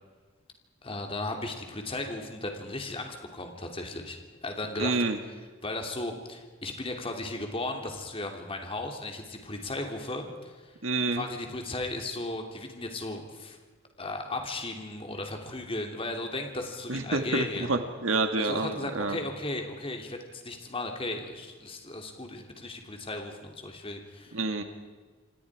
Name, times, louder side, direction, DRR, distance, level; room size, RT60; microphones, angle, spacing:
voice 1, 0.8-5.0 5.6-10.7 11.1-13.6 14.0-17.7 18.4-24.4, left 2 dB, 30° left, 3 dB, 3.0 m, -36 dB
voice 2, 4.8-5.2 10.8-11.2 16.9-19.2 24.3-24.6, right 3 dB, 80° right, 6 dB, 1.9 m, -28 dB
28.0 x 25.5 x 4.9 m, 1.4 s
head